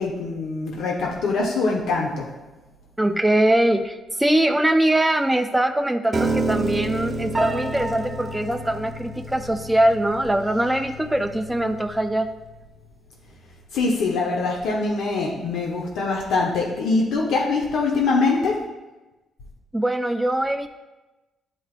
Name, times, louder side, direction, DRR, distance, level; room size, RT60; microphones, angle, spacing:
voice 1, 0.0-2.3 13.7-18.5, left 3 dB, 85° left, -2 dB, 0.8 m, -23 dB
voice 2, 3.0-12.3 19.7-20.7, right 1 dB, 10° right, 6 dB, 0.3 m, -22 dB
Piano, 6.1-12.3, right 2 dB, 25° right, 0.8 m, -29 dB
9.8 x 4.5 x 2.4 m, 1.1 s
cardioid pair, 90°, 0 cm